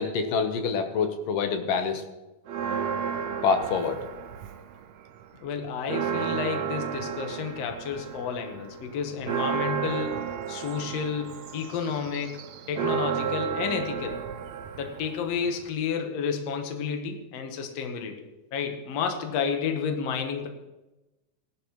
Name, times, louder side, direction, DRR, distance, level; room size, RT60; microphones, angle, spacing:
voice 1, 0.0-2.0 3.4-4.0, left 5 dB, 90° left, 6 dB, 2.7 m, -26 dB
Church bell, 2.5-4.8 5.2-5.3 5.6-15.7, right 7 dB, 75° right, 1.6 m, -32 dB
voice 2, 5.4-12.4 12.7-14.2 14.8-18.2 18.5-20.5, left 6 dB, 60° left, 4 dB, 2.1 m, -31 dB
18.5 x 11.5 x 3.1 m, 1.0 s
omnidirectional pair, 3.7 m